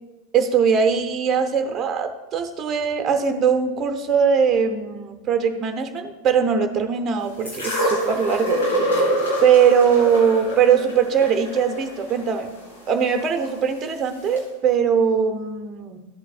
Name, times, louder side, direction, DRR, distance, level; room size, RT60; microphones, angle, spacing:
voice 1, 0.3-8.6 9.4-12.5 12.9-16.0, right 7 dB, 25° right, 7 dB, 0.9 m, -20 dB
sound 1, 7.4-13.5 14.4-14.5, equal, 60° left, 2.9 m, -26 dB
13.0 x 8.2 x 2.4 m, 1.1 s
figure-of-eight pair, 90°, 0 cm